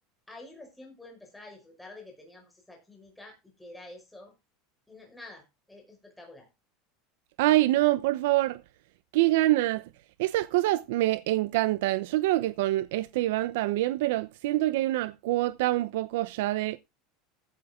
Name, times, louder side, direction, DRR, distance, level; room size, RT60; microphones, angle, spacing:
voice 1, 0.3-4.3 4.9-6.5, left 2 dB, 5° left, 5.5 m, -48 dB
voice 2, 7.4-8.6 9.1-9.8 10.2-16.8, right 17 dB, 75° right, 0.8 m, -25 dB
15.0 x 9.4 x 3.8 m
supercardioid pair, 175°, 0 cm